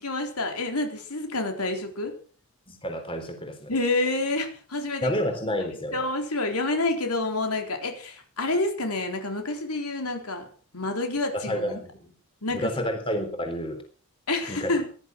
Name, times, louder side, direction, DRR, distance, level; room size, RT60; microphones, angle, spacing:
voice 1, 0.0-2.1 3.7-5.1 5.9-10.5 10.7-11.7 12.4-12.7 14.3-14.8, left 2 dB, 90° left, 4 dB, 3.9 m, -28 dB
voice 2, 2.7-3.7 5.0-6.0 11.3-12.1 12.5-13.8 14.5-14.8, equal, 25° left, 6 dB, 3.8 m, -30 dB
18.0 x 12.0 x 6.1 m, 0.42 s
head